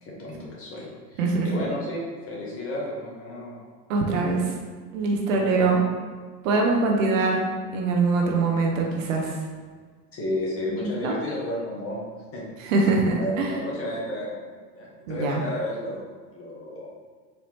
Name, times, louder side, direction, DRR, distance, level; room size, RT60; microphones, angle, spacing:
voice 1, 0.0-3.5 4.1-4.2 5.3-5.8 10.1-12.0 12.3-12.7 13.1-14.4 14.7-16.0 16.3-16.9, left 1 dB, 30° left, -4 dB, 1.1 m, -32 dB
voice 2, 1.2-1.7 3.9-4.4 4.9-5.8 6.4-7.4 7.7-9.4 10.8-11.2 12.6-13.5 15.1-15.4, right 3 dB, 55° right, -1 dB, 0.7 m, -23 dB
4.4 x 2.8 x 2.8 m, 1.5 s
figure-of-eight pair, 80°, 48 cm